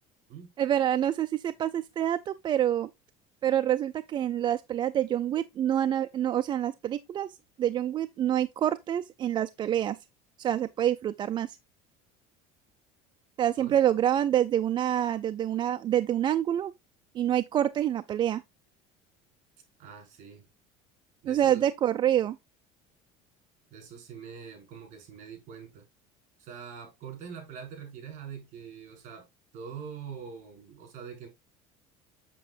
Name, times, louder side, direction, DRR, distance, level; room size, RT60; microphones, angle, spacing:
voice 1, 0.6-2.9 3.4-10.0 10.4-11.6 13.4-16.7 17.1-18.4 21.3-22.4, right 11 dB, 30° right, 0.4 m, -27 dB
voice 2, 19.8-20.5 21.2-21.6 23.7-25.9 26.4-29.2 29.5-31.3, right 7 dB, 50° right, 4.6 m, -44 dB
7.6 x 7.6 x 2.5 m
cardioid pair, 145°, 16 cm